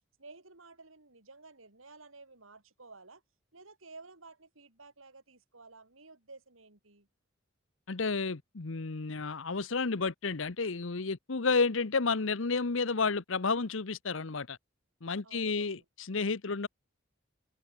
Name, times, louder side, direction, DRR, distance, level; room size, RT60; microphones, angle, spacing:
voice 1, 0.2-3.2 3.5-7.1 11.4-11.6 15.2-15.8, right 3 dB, 85° right, 3.9 m, -53 dB
voice 2, 7.9-14.6 15.0-16.7, left 4 dB, 75° left, 1.0 m, -31 dB
head